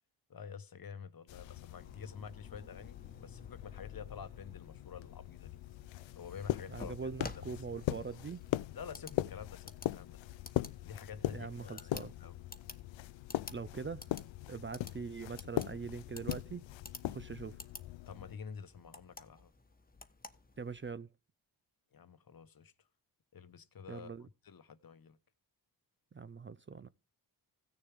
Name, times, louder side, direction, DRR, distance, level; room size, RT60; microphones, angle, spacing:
voice 1, 0.3-5.6 6.2-6.9 8.7-10.2 10.8-12.4 18.1-19.5 21.9-22.7 23.3-24.1 24.4-25.2, left 6 dB, 50° left, 1.1 m, -49 dB
sound 1, 1.3-18.4, left 15 dB, 75° left, 0.5 m, -41 dB
sound 2, 1.7-20.9, left 3 dB, 20° left, 1.2 m, -54 dB
voice 2, 6.7-8.4 11.3-12.1 13.5-14.1 14.5-16.6 17.0-17.6 20.6-21.1 23.9-24.3 26.1-26.9, right 5 dB, 25° right, 0.5 m, -42 dB
16.0 x 6.8 x 3.5 m
cardioid pair, 55°, 46 cm